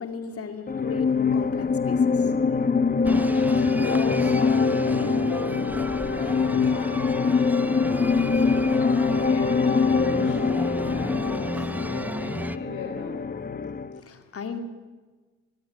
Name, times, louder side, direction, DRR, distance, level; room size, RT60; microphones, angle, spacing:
voice 1, 0.0-2.6 2.9-3.0 13.9-14.6, left 6 dB, 50° left, 7 dB, 2.6 m, -36 dB
sound 1, 0.7-14.0, left 5 dB, 30° left, 1.0 m, -23 dB
sound 2, 3.0-12.6, right 1 dB, 5° right, 0.8 m, -34 dB
voice 2, 3.1-7.6 8.2-13.2, left 4 dB, 80° left, 1 dB, 3.5 m, -38 dB
22.5 x 12.5 x 9.5 m, 1.3 s
cardioid pair, 90°, 30 cm